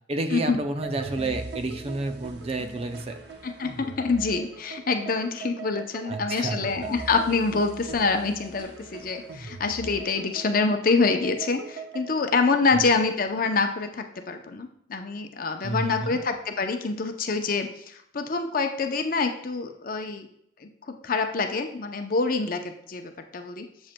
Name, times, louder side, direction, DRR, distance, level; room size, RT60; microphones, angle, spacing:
voice 1, 0.1-3.2 6.0-6.9 15.6-16.2, right 2 dB, 30° right, 7 dB, 0.5 m, -30 dB
sound 1, 0.8-12.1, right 4 dB, 60° right, 0.9 m, -40 dB
voice 2, 3.4-20.3 20.6-23.7, left 4 dB, 50° left, 6 dB, 0.6 m, -26 dB
7.6 x 7.3 x 2.2 m, 0.71 s
head